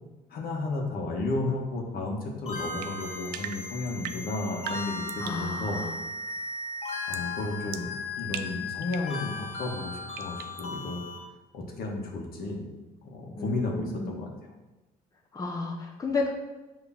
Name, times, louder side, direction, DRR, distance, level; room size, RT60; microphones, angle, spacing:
voice 1, 0.3-5.9 7.1-7.9 8.2-11.0 11.5-12.7 13.0-14.5, left 2 dB, 60° left, 0 dB, 1.3 m, -33 dB
sound 1, 2.5-11.2, left 3 dB, 35° left, 1.2 m, -37 dB
sound 2, 2.8-5.5 7.1-7.3 7.7-9.2 10.2-10.7, right 10 dB, 65° right, 0.4 m, -41 dB
voice 2, 5.2-5.9 13.3-14.1 15.3-16.3, left 3 dB, 20° left, -1 dB, 1.0 m, -32 dB
7.2 x 3.1 x 5.6 m, 1.1 s
cardioid pair, 110°, 17 cm